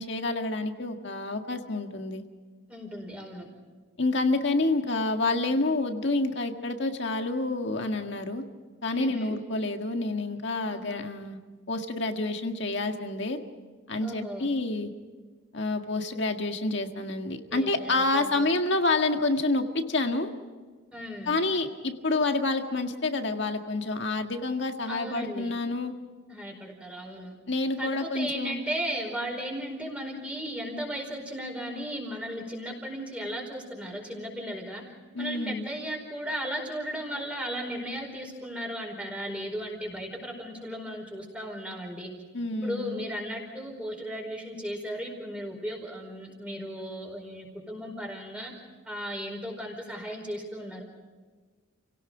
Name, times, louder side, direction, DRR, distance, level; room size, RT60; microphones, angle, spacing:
voice 1, 0.0-2.2 4.0-8.4 8.8-11.4 11.7-13.4 13.9-14.9 15.5-20.3 21.3-25.9 27.5-28.6 35.1-35.7 42.3-43.1, left 2 dB, 55° left, 5 dB, 1.8 m, -28 dB
voice 2, 2.7-3.5 8.9-9.4 10.7-11.0 14.0-14.5 17.5-18.5 20.9-21.4 24.9-25.5 26.3-27.3 27.8-34.8 35.2-42.1 42.6-48.5 48.8-50.8, equal, 5° right, 1 dB, 4.7 m, -36 dB
30.0 x 17.5 x 5.1 m, 1.4 s
head